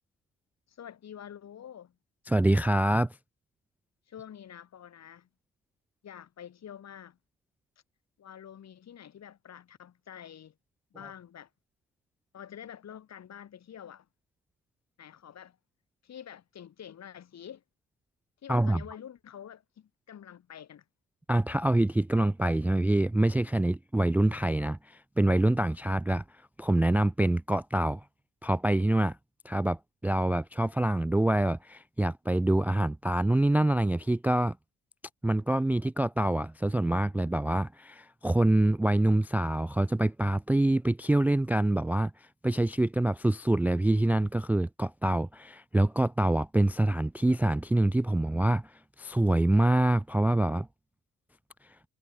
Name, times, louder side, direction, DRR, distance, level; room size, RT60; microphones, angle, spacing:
voice 1, 0.7-1.9 4.1-5.3 6.0-7.2 8.2-10.5 10.9-11.5 12.3-14.1 15.0-15.6 16.0-17.6 18.4-20.8, left 9 dB, 60° left, 4.8 m, -47 dB
voice 2, 2.3-3.1 18.5-18.8 21.3-26.2 26.6-28.0 28.4-29.2 29.4-34.6 35.2-42.1 42.4-48.7 49.0-50.7, right 1 dB, 5° right, 0.3 m, -25 dB
cardioid pair, 90°, 30 cm